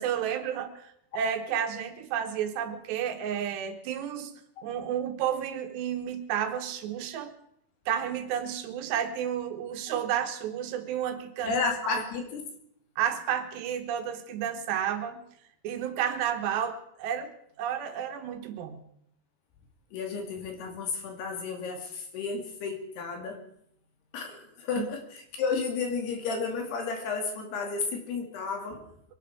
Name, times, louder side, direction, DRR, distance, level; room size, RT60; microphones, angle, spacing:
voice 1, 0.0-4.3 4.6-7.3 7.9-11.5 11.8-12.0 13.0-15.2 15.6-17.3 17.6-18.8 24.8-24.9, right 9 dB, 80° right, 7 dB, 3.3 m, -31 dB
voice 2, 11.4-12.5 19.9-23.4 24.1-28.9, left 4 dB, 70° left, 4 dB, 4.4 m, -32 dB
23.5 x 11.5 x 4.9 m, 0.73 s
omnidirectional pair, 5.0 m